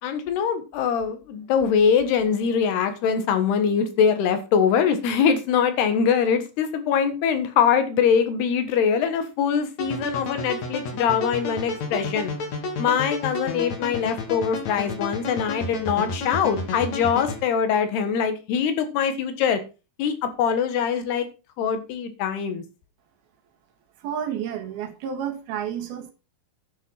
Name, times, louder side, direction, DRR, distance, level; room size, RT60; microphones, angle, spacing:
voice 1, 0.0-12.3 12.8-19.6 20.0-21.3 21.6-22.6, left 7 dB, 75° left, 3.6 m, -23 dB
sound 1, 9.8-17.4, left 3 dB, 50° left, 3.1 m, -31 dB
voice 2, 24.0-26.1, right 8 dB, 70° right, 3.5 m, -30 dB
10.5 x 7.5 x 5.7 m
omnidirectional pair, 4.7 m